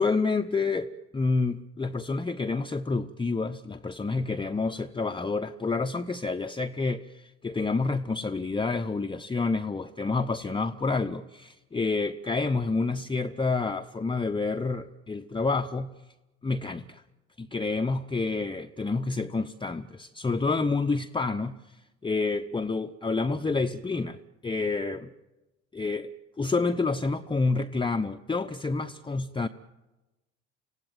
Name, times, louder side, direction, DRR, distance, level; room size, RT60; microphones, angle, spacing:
voice 1, 0.0-15.9 16.4-17.0 17.4-21.8 22.0-25.1 25.7-26.1 26.4-29.5, left 3 dB, 15° left, 6 dB, 0.8 m, -28 dB
26.5 x 16.5 x 9.1 m, 1.1 s
hypercardioid pair, 60°, 33 cm